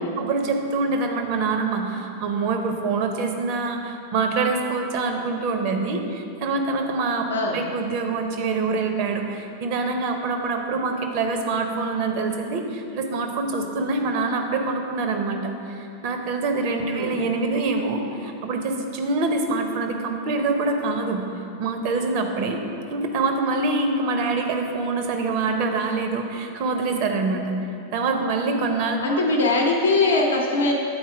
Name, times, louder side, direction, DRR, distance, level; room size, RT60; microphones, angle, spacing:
voice 1, 0.2-7.2 7.5-21.2 21.6-22.6 22.9-27.5 27.9-29.2, right 3 dB, 45° right, 4 dB, 0.7 m, -25 dB
voice 2, 7.3-7.6 16.8-17.2 29.0-30.7, left 2 dB, 65° left, 0 dB, 0.8 m, -21 dB
8.8 x 4.3 x 4.8 m, 2.6 s
figure-of-eight pair, 90°, 0 cm